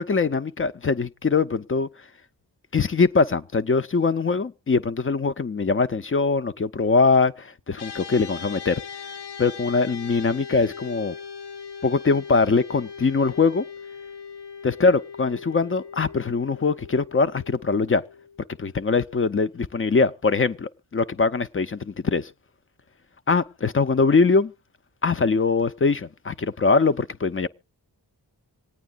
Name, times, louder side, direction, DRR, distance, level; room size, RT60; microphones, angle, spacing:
voice 1, 0.0-1.9 2.7-8.8 9.4-11.2 11.8-13.6 14.6-18.0 18.6-22.3 23.3-24.5 25.0-27.5, left 4 dB, 30° left, 0.5 m, -22 dB
sound 1, 7.8-19.2, left 6 dB, 65° left, 0.7 m, -40 dB
26.0 x 9.0 x 2.3 m
cardioid pair, 50°, 43 cm